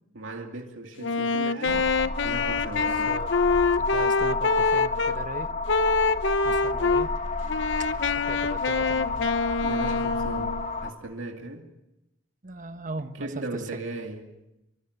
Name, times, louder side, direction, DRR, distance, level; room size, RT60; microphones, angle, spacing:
voice 1, 0.1-3.2 9.6-11.7 13.1-14.2, right 2 dB, 70° right, 2.5 m, -37 dB
Wind instrument woodwind instrument, 1.0-5.2 5.7-7.1 7.5-10.7, left 4 dB, 60° left, 1.0 m, -25 dB
sound 1, 1.7-10.9, left 3 dB, 40° left, 2.0 m, -31 dB
voice 2, 2.8-3.3 3.7-5.5 6.4-7.1 7.8-7.9 8.1-9.3 12.4-13.8, right 2 dB, 40° right, 1.3 m, -38 dB
27.0 x 24.0 x 8.1 m
head